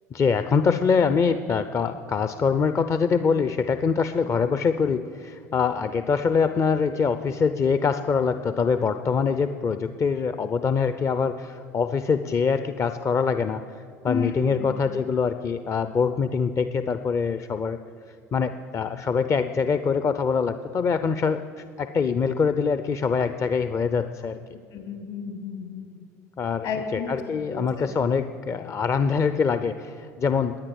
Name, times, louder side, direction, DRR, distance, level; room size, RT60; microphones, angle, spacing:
voice 1, 0.1-17.8 18.3-24.4 26.4-30.6, left 5 dB, 35° left, 10 dB, 0.7 m, -24 dB
voice 2, 14.1-14.7 24.7-25.9 26.6-27.9, left 5 dB, 65° left, 3 dB, 3.4 m, -32 dB
19.5 x 10.0 x 7.1 m, 2.2 s
hypercardioid pair, 65°, 8 cm